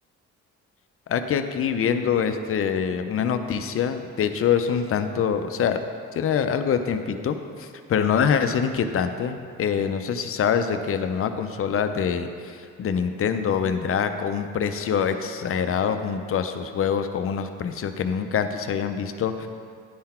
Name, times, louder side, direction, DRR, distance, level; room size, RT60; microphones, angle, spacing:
voice 1, 1.1-5.8 6.1-19.5, left 7 dB, 50° left, 8 dB, 0.5 m, -25 dB
10.5 x 3.8 x 4.3 m, 2.2 s
cardioid pair, 90°, 30 cm